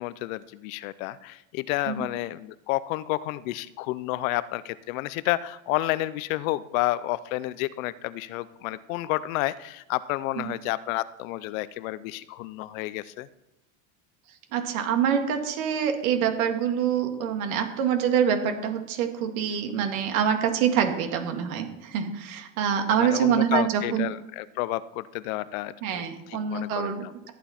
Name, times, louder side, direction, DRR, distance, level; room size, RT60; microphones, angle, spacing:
voice 1, 0.0-13.3 23.0-26.0 26.3-27.1, left 16 dB, 75° left, 16 dB, 0.7 m, -30 dB
voice 2, 14.5-24.1 25.8-27.0, right 8 dB, 85° right, 5 dB, 2.1 m, -25 dB
14.0 x 9.2 x 4.4 m, 0.92 s
supercardioid pair, 150°, 41 cm